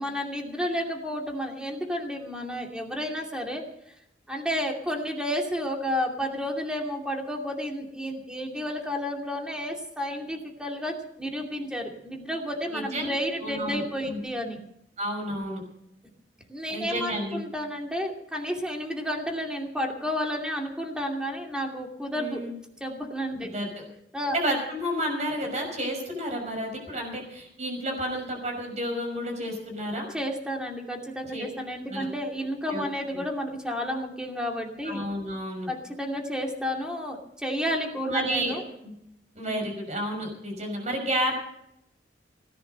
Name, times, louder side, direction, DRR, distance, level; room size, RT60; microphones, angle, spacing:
voice 1, 0.0-3.9 4.3-14.6 16.5-22.4 22.8-23.5 24.1-24.4 30.1-35.0 35.7-38.6 39.5-39.6, equal, 5° right, 1 dB, 2.6 m, -31 dB
voice 2, 12.7-13.1 13.4-14.2 15.0-15.6 16.7-17.4 22.2-22.5 23.4-23.7 24.3-30.1 31.3-31.4 31.9-32.1 32.7-32.8 33.1-33.2 34.8-35.7 38.1-38.9 39.3-41.4, equal, 40° right, 3 dB, 6.0 m, -31 dB
18.0 x 10.5 x 6.6 m, 0.77 s
head